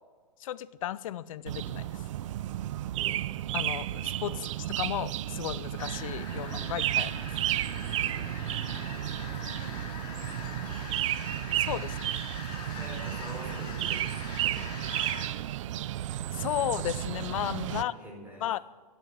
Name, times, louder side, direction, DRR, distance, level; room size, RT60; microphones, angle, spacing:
voice 1, 0.4-2.0 3.5-4.5 4.8-7.2 11.6-12.1 16.3-17.9 18.4-18.6, left 12 dB, 55° left, 18 dB, 0.6 m, -34 dB
sound 1, 1.5-17.8, right 13 dB, 50° right, 0.5 m, -33 dB
sound 2, 5.8-15.3, left 4 dB, 25° left, 2.9 m, -43 dB
voice 2, 8.4-8.8 9.9-10.7 12.7-14.7 17.7-18.4, right 1 dB, 10° right, -1 dB, 5.3 m, -46 dB
12.0 x 11.5 x 7.5 m, 1.4 s
hypercardioid pair, 125°, 20 cm